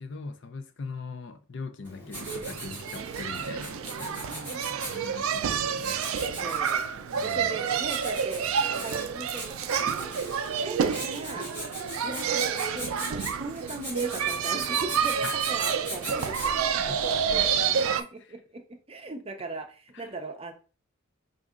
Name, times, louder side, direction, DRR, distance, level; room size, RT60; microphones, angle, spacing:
voice 1, 0.0-4.3 4.7-6.0 7.1-7.7 15.2-15.4 16.8-17.9 19.9-20.1, left 4 dB, 55° left, 0.5 m, -41 dB
Writing, 1.8-16.8, equal, 10° left, 2.3 m, -41 dB
sound 1, 2.1-18.0, right 7 dB, 80° right, 0.4 m, -29 dB
voice 2, 4.3-4.7 6.4-6.9 7.2-8.5 8.8-11.5 12.0-17.6 18.0-20.5, right 2 dB, 30° right, 0.6 m, -39 dB
4.1 x 2.6 x 3.6 m
head